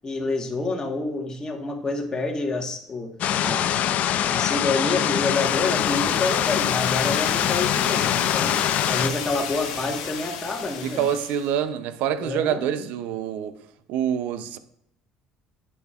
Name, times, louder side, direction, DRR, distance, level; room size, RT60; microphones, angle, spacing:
voice 1, 0.0-3.1 3.4-3.8 4.3-8.6 8.9-11.0 12.2-12.6, left 3 dB, 25° left, 1.5 m, -28 dB
sound 1, 3.2-9.1, left 10 dB, 55° left, 0.5 m, -23 dB
sound 2, 5.0-11.5, left 7 dB, 75° left, 1.1 m, -33 dB
voice 2, 10.8-13.6 13.9-14.6, right 9 dB, 65° right, 0.6 m, -26 dB
8.6 x 6.6 x 2.5 m
hypercardioid pair, 60°, 3 cm